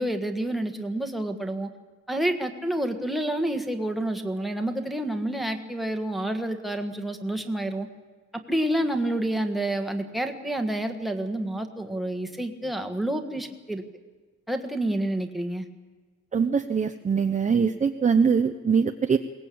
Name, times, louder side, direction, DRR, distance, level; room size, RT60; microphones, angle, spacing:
voice 1, 0.0-1.7 2.1-7.9 8.3-13.8 14.5-15.7, right 1 dB, ahead, 5 dB, 1.5 m, -28 dB
voice 2, 16.3-19.2, right 6 dB, 25° right, 7 dB, 0.6 m, -22 dB
22.0 x 19.0 x 8.6 m, 1.4 s
wide cardioid pair, 165°, 31 cm